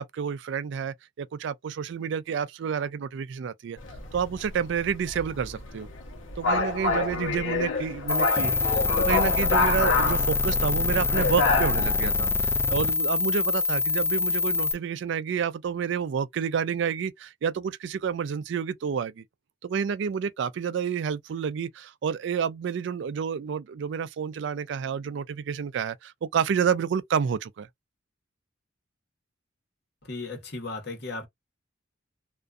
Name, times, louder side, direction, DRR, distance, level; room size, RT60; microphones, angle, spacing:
voice 1, 0.0-3.8 4.1-5.9 6.4-19.2 19.6-27.7, right 7 dB, 65° right, 0.3 m, -29 dB
sound 1, 3.8-12.3, left 3 dB, 80° left, 0.9 m, -28 dB
sound 2, 8.1-14.7, left 4 dB, 10° left, 0.3 m, -25 dB
voice 2, 30.0-31.3, left 3 dB, 60° left, 1.1 m, -36 dB
2.5 x 2.3 x 2.4 m
head